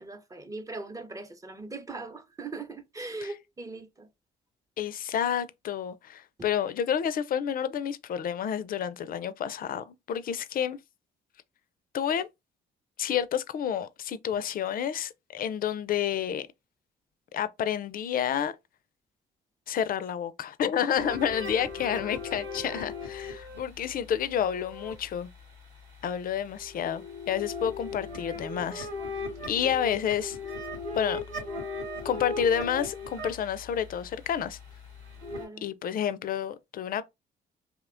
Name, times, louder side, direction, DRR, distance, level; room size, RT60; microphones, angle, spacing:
voice 1, 0.0-4.1 6.4-6.5 35.3-35.7, right 3 dB, 15° right, 0.6 m, -40 dB
voice 2, 4.8-10.8 11.9-12.3 13.0-16.5 17.3-18.6 19.7-25.3 26.0-28.9 29.5-30.4 30.9-31.2 32.0-34.6 35.6-37.0, left 9 dB, 45° left, 0.4 m, -29 dB
sound 1, 20.9-25.4 26.3-35.5, left 3 dB, 85° right, 1.4 m, -38 dB
2.8 x 2.1 x 2.4 m
supercardioid pair, 55°, 20 cm